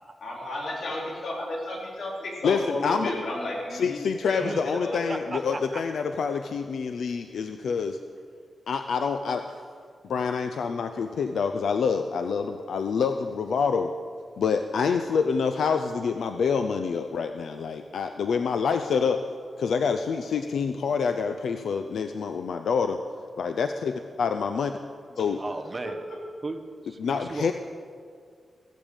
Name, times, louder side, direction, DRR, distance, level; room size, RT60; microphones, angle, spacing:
voice 1, 0.2-5.7 25.2-25.3 25.8-26.2, left 1 dB, 70° left, -2 dB, 4.0 m, -34 dB
voice 2, 2.4-3.1 3.7-8.0 8.7-9.5 10.0-13.9 14.4-19.2 19.6-23.0 23.4-24.7 25.2-25.4 27.0-27.5, left 5 dB, 90° left, 7 dB, 0.6 m, -27 dB
voice 3, 5.1-5.8 25.4-26.0 26.4-27.5, right 2 dB, 30° right, 6 dB, 1.2 m, -35 dB
16.0 x 15.5 x 5.3 m, 2.1 s
wide cardioid pair, 95°, 0 cm